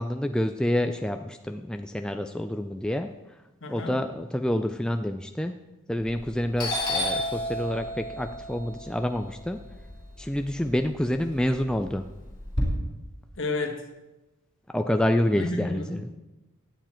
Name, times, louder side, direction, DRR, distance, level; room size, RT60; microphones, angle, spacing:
voice 1, 0.0-3.1 3.7-5.5 5.9-9.6 10.2-12.0 14.7-16.1, left 1 dB, 5° left, 6 dB, 0.3 m, -28 dB
voice 2, 3.6-4.0 13.4-13.8 15.3-16.1, left 3 dB, 60° left, 4 dB, 1.6 m, -31 dB
Doorbell, 6.0-6.3 6.6-10.7 11.1-12.6, left 1 dB, 20° left, 3.2 m, -31 dB
16.0 x 9.2 x 4.4 m, 1.1 s
head